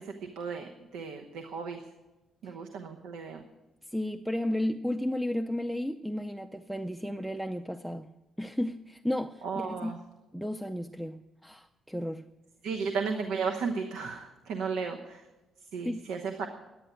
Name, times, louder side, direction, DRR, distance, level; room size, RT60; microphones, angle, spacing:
voice 1, 0.0-1.8 2.4-3.4 9.4-10.0 12.6-15.2 15.7-16.5, right 5 dB, 85° right, 1.0 m, -34 dB
voice 2, 3.9-8.1 8.4-9.9 10.3-12.2 15.8-16.0, left 1 dB, 5° right, 0.5 m, -33 dB
11.0 x 9.4 x 9.1 m
cardioid pair, 90°, 0 cm